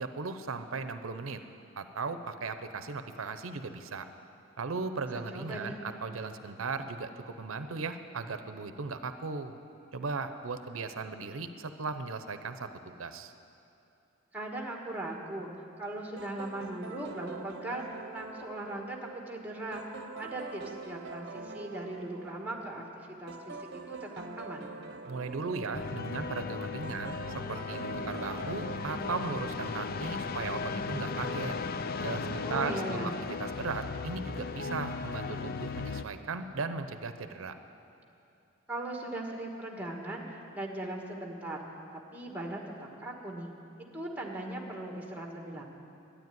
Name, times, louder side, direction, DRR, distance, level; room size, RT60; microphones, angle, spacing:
voice 1, 0.0-1.4 1.8-4.1 4.6-9.5 9.9-13.3 25.1-31.5 32.0-33.1 33.4-37.6, right 4 dB, 90° right, 9 dB, 0.7 m, -37 dB
voice 2, 5.1-5.8 14.3-15.5 15.8-17.8 18.1-19.8 20.2-24.7 32.4-33.2 38.7-41.6 41.9-42.6 43.0-43.5 43.9-45.6, right 1 dB, 10° right, 0 dB, 1.7 m, -39 dB
sound 1, 16.2-30.4, right 3 dB, 55° right, 0.9 m, -45 dB
sound 2, 25.7-36.0, left 4 dB, 50° left, 0.5 m, -36 dB
12.0 x 9.9 x 9.3 m, 2.6 s
head